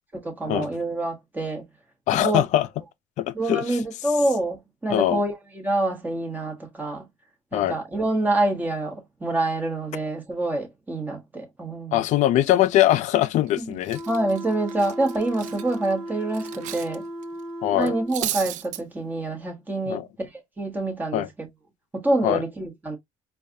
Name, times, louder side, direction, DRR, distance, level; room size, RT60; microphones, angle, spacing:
voice 1, 0.2-1.6 2.1-2.4 3.3-7.0 7.5-12.0 13.6-13.8 14.1-17.0 17.7-21.5 21.9-23.0, right 2 dB, 15° right, 1.4 m, -26 dB
voice 2, 2.1-2.7 3.2-3.8 4.9-5.2 7.5-7.8 11.9-14.0 17.6-17.9 19.9-20.1 21.1-21.3 22.2-22.4, left 13 dB, 65° left, 0.5 m, -22 dB
Cutlery silverware, 13.2-13.5 13.8-17.0 17.2-17.4 17.8-18.8, right 12 dB, 75° right, 0.5 m, -34 dB
sound 1, 13.9-18.2, equal, 5° left, 2.2 m, -36 dB
4.5 x 2.4 x 2.7 m
cardioid pair, 130°, 13 cm